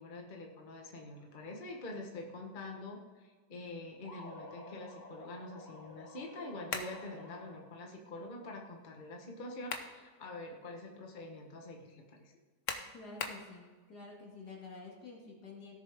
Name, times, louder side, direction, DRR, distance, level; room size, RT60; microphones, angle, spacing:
voice 1, 0.0-12.3, left 2 dB, 30° left, 1 dB, 1.3 m, -46 dB
sound 1, 4.0-7.9, left 1 dB, 90° left, 3.3 m, -51 dB
sound 2, 6.7-7.0 9.4-10.0 10.5-10.6 12.7-13.5, left 5 dB, 55° left, 1.2 m, -39 dB
voice 2, 12.9-15.8, left 3 dB, 70° left, -2 dB, 2.9 m, -49 dB
17.0 x 7.2 x 3.6 m, 1.5 s
omnidirectional pair, 1.8 m